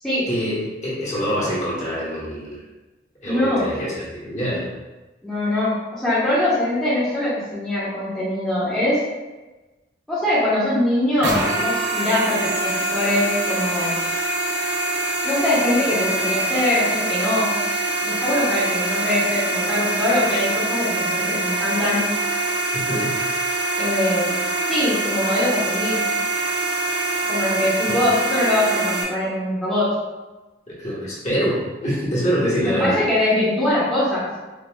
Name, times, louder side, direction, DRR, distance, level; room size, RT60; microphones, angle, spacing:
voice 1, 0.3-2.6 3.2-4.7 22.7-23.2 27.9-28.0 30.7-33.0, equal, 40° left, -8 dB, 1.2 m, -25 dB
voice 2, 3.2-3.7 5.2-9.1 10.1-13.9 15.2-17.5 18.0-22.0 23.8-24.4 24.7-26.0 27.3-29.9 32.6-34.3, left 1 dB, ahead, -11 dB, 0.9 m, -22 dB
sound 1, 11.2-29.0, right 2 dB, 85° right, 0.6 m, -24 dB
5.2 x 2.3 x 2.2 m, 1.1 s
head